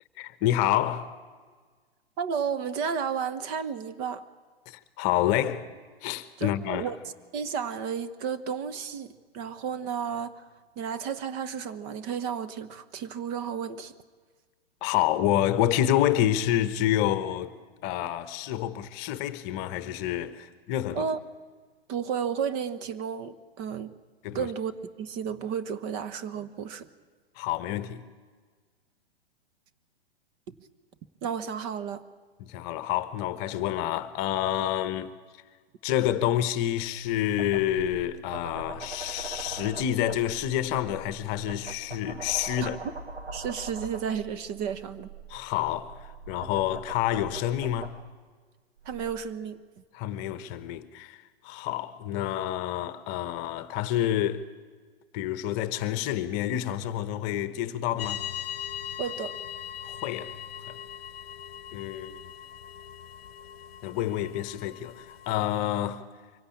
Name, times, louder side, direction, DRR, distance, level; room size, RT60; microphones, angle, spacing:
voice 1, 0.2-1.1 4.7-5.7 6.0-6.9 14.8-17.5 17.8-21.1 24.2-24.5 27.4-28.0 32.4-35.1 35.8-42.8 45.3-47.9 49.9-54.5 55.1-58.2 59.8-60.3 60.7-60.8 61.7-62.2 63.8-66.0, left 12 dB, 30° left, 1.1 m, -28 dB
voice 2, 2.2-4.2 6.4-10.4 10.8-13.9 20.9-21.2 21.9-23.9 24.3-26.9 31.2-32.0 42.6-42.7 43.3-45.1 48.8-49.6 59.0-59.4, right 7 dB, 30° right, 1.0 m, -32 dB
sound 1, 36.8-48.0 48.8-49.2, right 4 dB, 80° right, 2.3 m, -42 dB
sound 2, 58.0-65.6, left 10 dB, 65° left, 0.9 m, -40 dB
24.0 x 17.0 x 8.6 m
figure-of-eight pair, 115°, 32 cm